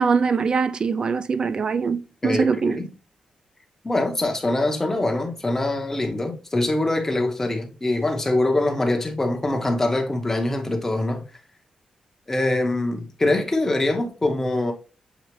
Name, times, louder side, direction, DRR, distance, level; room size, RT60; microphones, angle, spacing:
voice 1, 0.0-2.8, right 5 dB, 40° right, 0.4 m, -22 dB
voice 2, 2.2-2.9 3.8-11.2 12.3-14.7, left 2 dB, 15° left, 1.0 m, -23 dB
7.1 x 2.4 x 3.1 m
wide cardioid pair, 140°, 2 cm